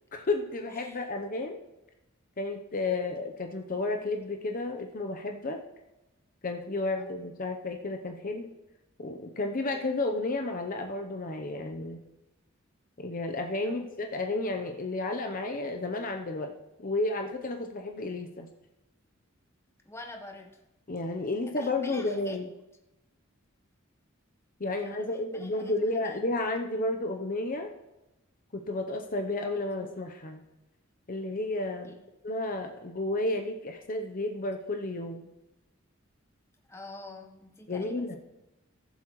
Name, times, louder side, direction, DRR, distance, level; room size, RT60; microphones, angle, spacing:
voice 1, 0.1-1.6 2.4-5.6 6.4-8.5 9.0-12.0 13.0-16.5 16.8-18.5 20.9-22.5 24.6-27.7 28.5-30.4 31.1-32.0 32.2-35.3 37.7-38.2, left 2 dB, 45° left, 4 dB, 0.8 m, -32 dB
voice 2, 0.7-1.1 7.0-7.1 13.6-13.9 19.8-20.6 21.5-22.4 24.7-26.2 31.8-32.0 36.7-38.2, left 2 dB, 15° left, 2 dB, 1.1 m, -47 dB
18.5 x 7.6 x 3.1 m, 1.0 s
head